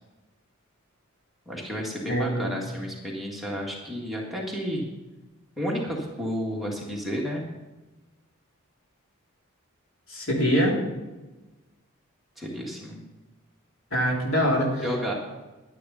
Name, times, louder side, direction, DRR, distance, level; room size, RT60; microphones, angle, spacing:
voice 1, 1.5-4.9 5.6-7.4 12.4-13.0 14.8-15.1, equal, ahead, -3 dB, 1.8 m, -31 dB
voice 2, 2.1-2.5 10.1-10.8 13.9-14.8, equal, 70° left, -2 dB, 3.2 m, -24 dB
11.0 x 10.0 x 5.6 m, 1.1 s
head